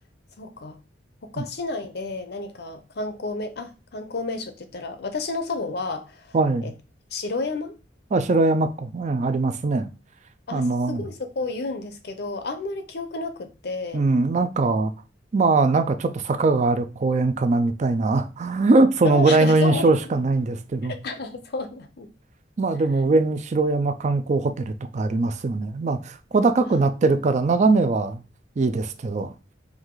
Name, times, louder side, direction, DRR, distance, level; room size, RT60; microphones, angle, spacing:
voice 1, 0.4-0.8 1.2-6.4 6.6-6.7 7.1-7.7 10.5-14.1 19.0-19.9 20.8-22.1 26.6-26.8, left 3 dB, 60° left, 0.6 m, -31 dB
voice 2, 6.3-6.7 8.1-9.9 10.5-11.0 13.9-14.9 15.3-20.9 22.6-28.2 28.6-29.3, right 3 dB, 40° right, 0.4 m, -21 dB
4.8 x 2.6 x 3.7 m
head